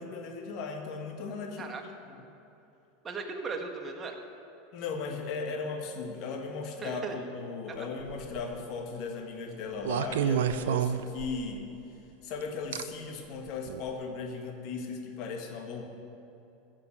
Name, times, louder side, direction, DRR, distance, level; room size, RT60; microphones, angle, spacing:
voice 1, 0.0-1.8 2.1-2.3 4.7-7.1 7.3-11.7 12.2-15.8, left 4 dB, 55° left, 3 dB, 1.9 m, -37 dB
voice 2, 3.0-4.2 6.8-7.2 7.7-7.9, right 4 dB, 30° right, 3 dB, 1.7 m, -37 dB
sound 1, 8.0-8.5 9.8-11.6 12.7-12.8 13.7-13.9, right 9 dB, 75° right, 0.5 m, -29 dB
15.0 x 7.4 x 6.6 m, 2.9 s
hypercardioid pair, 90°, 0 cm